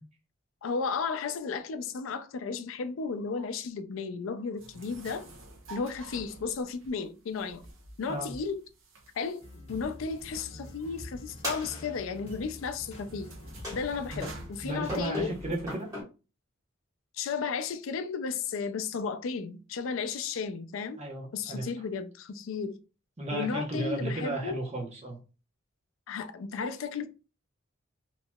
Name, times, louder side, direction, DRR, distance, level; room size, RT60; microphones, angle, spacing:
voice 1, 0.6-5.3 5.7-7.6 8.0-8.6 9.2-9.4 9.7-13.3 13.7-15.3 17.2-21.0 21.3-22.8 23.3-24.6 26.1-27.1, left 5 dB, 80° left, 0.4 m, -34 dB
sound 1, 4.6-15.7, right 2 dB, 75° right, 0.7 m, -50 dB
sound 2, 9.4-15.1, left 1 dB, 30° left, 0.7 m, -46 dB
sound 3, 11.4-12.3 13.6-14.2 14.9-16.0, left 1 dB, 15° right, 1.5 m, -38 dB
voice 2, 14.6-15.9 21.0-21.7 23.2-25.2, right 1 dB, 35° right, 0.8 m, -34 dB
2.9 x 2.8 x 2.2 m
head